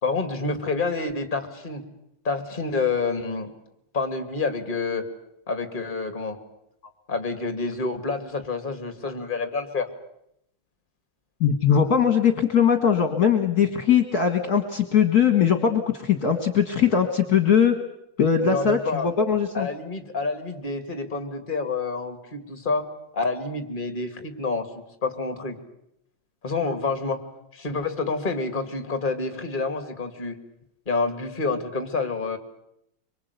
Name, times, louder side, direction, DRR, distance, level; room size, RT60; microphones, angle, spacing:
voice 1, 0.0-1.8 2.2-3.5 3.9-5.1 5.5-6.4 7.1-9.9 13.6-13.7 18.4-19.1 19.5-22.9 23.1-24.7 25.0-25.6 26.4-27.2 27.5-30.4 30.9-32.4, left 3 dB, 25° left, 8 dB, 2.4 m, -28 dB
voice 2, 11.4-17.8 18.2-19.7, left 7 dB, 50° left, 7 dB, 2.1 m, -20 dB
24.5 x 24.5 x 8.3 m, 0.79 s
omnidirectional pair, 2.2 m